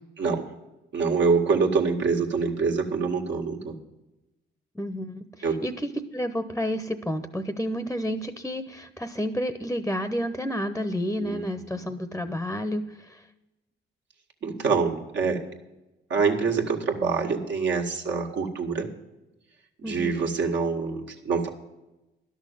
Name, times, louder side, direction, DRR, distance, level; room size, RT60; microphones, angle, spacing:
voice 1, 0.2-0.5 0.9-3.8 5.4-5.6 11.2-11.8 14.4-15.4 16.1-18.9 19.8-21.5, right 4 dB, 65° right, 1 dB, 1.9 m, -25 dB
voice 2, 4.7-13.2 19.8-20.1, equal, 5° left, 11 dB, 0.8 m, -30 dB
11.5 x 6.4 x 9.2 m, 0.98 s
cardioid pair, 90°, 20 cm